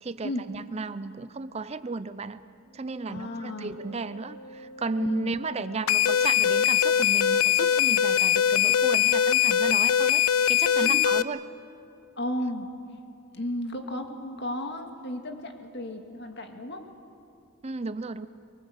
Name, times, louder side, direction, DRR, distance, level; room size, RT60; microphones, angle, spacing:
voice 1, 0.0-2.4 2.7-11.4 17.6-18.3, right 3 dB, 30° right, 13 dB, 0.5 m, -34 dB
Wind instrument woodwind instrument, 2.6-9.7, equal, 30° left, 1.3 m, -47 dB
voice 2, 3.1-3.7 5.0-5.3 10.8-11.0 12.2-12.7 13.3-16.9, left 1 dB, 50° left, 5 dB, 2.1 m, -34 dB
sound 1, 5.9-11.2, left 10 dB, 85° left, 0.6 m, -22 dB
24.5 x 23.0 x 8.0 m, 2.8 s
head